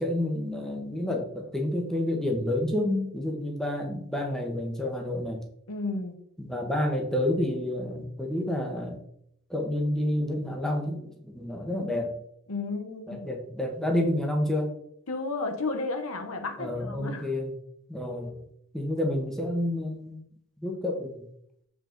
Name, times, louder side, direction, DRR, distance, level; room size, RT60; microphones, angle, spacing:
voice 1, 0.0-5.4 6.4-9.0 9.5-12.2 13.1-14.7 16.6-17.6 17.9-18.4 18.7-20.2 20.6-21.3, left 1 dB, ahead, 0 dB, 1.2 m, -29 dB
voice 2, 5.7-6.1 12.5-13.3 15.1-17.3, left 3 dB, 85° left, 6 dB, 1.2 m, -32 dB
7.6 x 5.1 x 3.9 m, 0.71 s
head